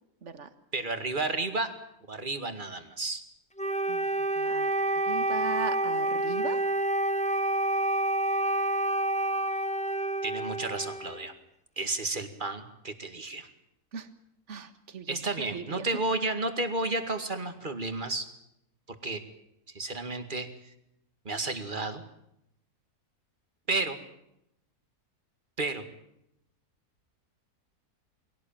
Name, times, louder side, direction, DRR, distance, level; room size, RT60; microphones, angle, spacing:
voice 1, 0.2-0.5 3.9-4.1 4.4-4.7 5.1-6.7 13.9-14.1 14.5-15.9, right 6 dB, 50° right, 11 dB, 1.9 m, -39 dB
voice 2, 0.7-1.7 2.1-3.2 10.2-11.3 11.8-13.5 15.1-18.3 19.0-19.2 19.7-20.5 21.3-22.0 23.7-24.0 25.6-25.8, right 2 dB, 30° right, 9 dB, 2.2 m, -32 dB
Wind instrument woodwind instrument, 3.6-11.3, right 1 dB, 5° left, 0.9 m, -28 dB
22.5 x 17.5 x 9.0 m, 0.79 s
omnidirectional pair, 1.6 m